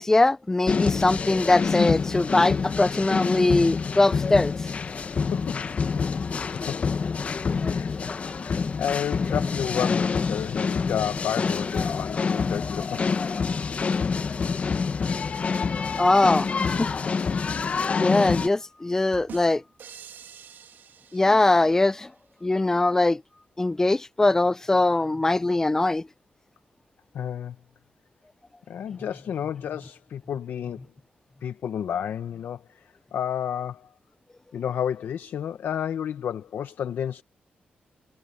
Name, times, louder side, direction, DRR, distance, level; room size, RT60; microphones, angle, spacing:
voice 1, 0.0-4.5 7.6-7.7 8.1-8.2 16.0-16.9 18.0-19.6 21.1-22.1 22.4-23.2 23.6-26.0, left 2 dB, 15° left, 0.3 m, -21 dB
sound 1, 0.7-18.5, left 5 dB, 40° left, 1.0 m, -27 dB
voice 2, 5.3-5.7 6.5-6.8 7.2-13.0 27.1-27.6 28.7-30.8 31.4-32.8 33.1-33.9 34.5-37.2, left 9 dB, 75° left, 0.7 m, -31 dB
sound 2, 19.1-21.9, right 8 dB, 70° right, 1.9 m, -46 dB
wide cardioid pair, 150°, 3 cm